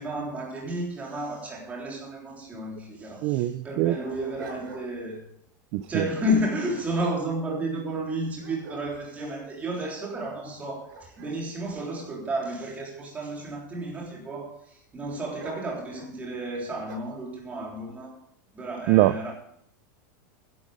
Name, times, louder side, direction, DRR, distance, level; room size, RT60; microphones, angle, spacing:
voice 1, 0.0-5.3 5.8-18.2 18.5-19.3, right 1 dB, 15° right, 3.5 m, -32 dB
Dog, 2.8-2.9 3.5-5.1 5.6-5.9 6.5-8.0 8.4-9.3 9.9-10.0 10.5-12.8 13.4-14.1 15.4-16.2 16.8-17.2, right 3 dB, 80° right, 5.8 m, -45 dB
voice 2, 3.2-4.0 5.7-5.8 18.9-19.1, right 16 dB, 40° right, 0.4 m, -22 dB
14.0 x 11.0 x 5.0 m
supercardioid pair, 170°, 11 cm